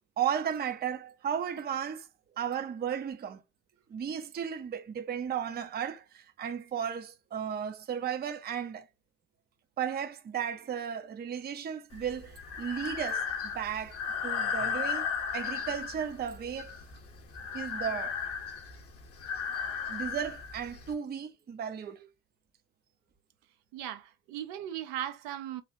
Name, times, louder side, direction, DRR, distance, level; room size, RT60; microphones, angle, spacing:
voice 1, 0.2-2.1 2.4-3.4 3.9-8.9 9.8-15.1 15.3-16.8 17.5-18.2 19.9-22.1, right 8 dB, 20° right, 0.5 m, -35 dB
Breathing, 11.9-20.9, left 6 dB, 30° left, 0.9 m, -35 dB
voice 2, 23.7-25.6, right 11 dB, 65° right, 0.7 m, -38 dB
3.2 x 2.3 x 2.6 m
hypercardioid pair, 60°, 48 cm